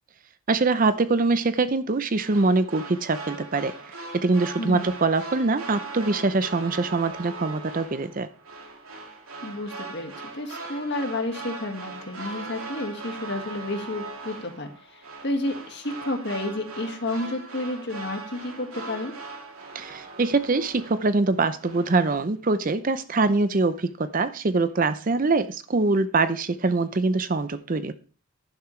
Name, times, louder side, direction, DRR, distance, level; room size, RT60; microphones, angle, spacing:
voice 1, 0.5-8.3 19.7-27.9, right 3 dB, 40° right, 12 dB, 0.5 m, -24 dB
sound 1, 2.2-21.3 21.6-22.1, right 3 dB, 75° right, 2.8 m, -40 dB
voice 2, 4.6-4.9 9.4-19.2, left 2 dB, 50° left, 4 dB, 1.8 m, -31 dB
10.5 x 10.5 x 3.2 m, 0.37 s
head